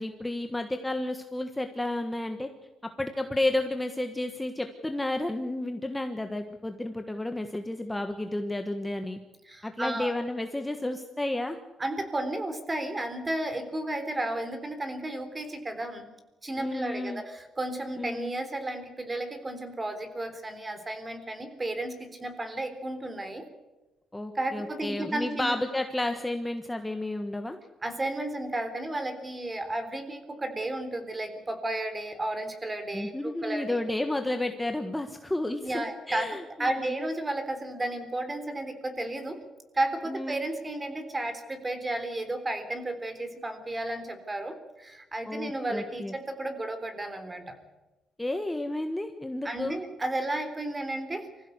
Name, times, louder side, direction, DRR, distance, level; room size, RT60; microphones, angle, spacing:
voice 1, 0.0-2.5 3.0-9.2 9.6-11.6 16.6-17.2 18.0-18.3 24.1-27.6 32.9-37.0 40.1-40.4 45.3-46.1 48.2-49.8, left 1 dB, 10° left, 6 dB, 1.4 m, -31 dB
voice 2, 9.5-10.1 11.8-16.1 16.4-23.5 24.3-25.5 27.8-33.8 35.6-36.3 36.6-39.4 39.7-47.5 49.4-51.3, right 1 dB, 20° right, 8 dB, 3.7 m, -33 dB
25.0 x 15.5 x 8.2 m, 1.1 s
cardioid pair, 115°, 0 cm